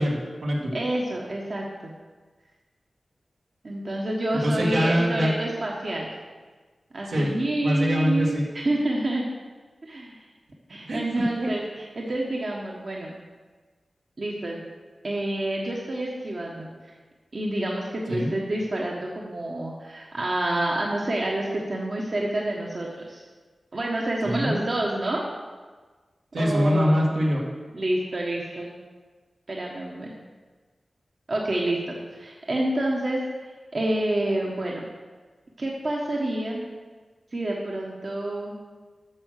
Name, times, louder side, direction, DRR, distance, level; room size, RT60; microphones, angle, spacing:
voice 1, 0.0-0.7 4.4-5.3 7.1-7.3 7.6-8.4 10.9-11.5 18.1-18.3 24.2-24.6 26.3-27.4, equal, 85° right, -4 dB, 2.1 m, -23 dB
voice 2, 0.7-1.9 3.6-6.1 6.9-9.2 9.8-10.2 10.7-13.1 14.2-14.6 15.0-16.9 17.3-23.2 23.7-25.2 26.4-27.0 27.7-28.7 29.5-30.1 31.3-31.8 32.1-33.2 33.7-34.8 35.6-36.6 37.3-38.6, right 1 dB, 60° right, -2 dB, 1.4 m, -28 dB
8.8 x 6.3 x 6.6 m, 1.4 s
cardioid pair, 50°, 0 cm